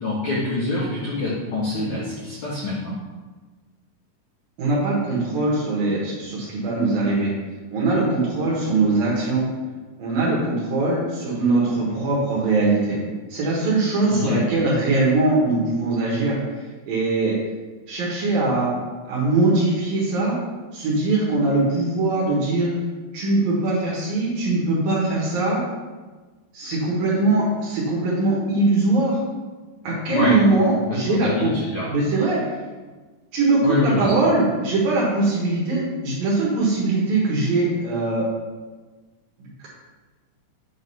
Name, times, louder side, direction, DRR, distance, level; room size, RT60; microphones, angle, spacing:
voice 1, 0.0-2.9 14.1-14.4 30.1-30.3 30.9-31.9 33.6-34.1, left 2 dB, 70° left, -8 dB, 1.8 m, -25 dB
voice 2, 4.6-7.3 7.7-9.5 10.0-13.0 13.3-17.4 17.9-18.7 19.1-20.3 20.7-22.7 23.1-25.6 26.5-29.2 29.8-31.5 31.9-32.6 33.3-38.2 39.4-39.7, right 2 dB, 65° right, -5 dB, 2.7 m, -21 dB
8.6 x 3.9 x 5.5 m, 1.3 s
omnidirectional pair, 5.4 m